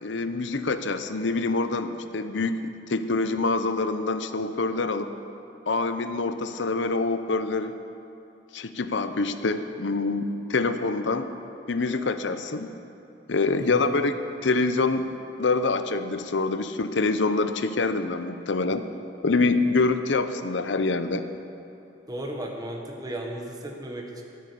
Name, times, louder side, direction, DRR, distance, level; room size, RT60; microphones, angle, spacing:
voice 1, 0.0-5.1 5.7-7.7 8.5-11.3 11.7-12.7 13.3-18.8 19.2-21.2, left 3 dB, 75° left, 10 dB, 0.7 m, -26 dB
voice 2, 13.6-13.9 22.1-24.2, right 1 dB, 20° right, 1 dB, 1.3 m, -35 dB
13.5 x 9.0 x 6.9 m, 2.9 s
head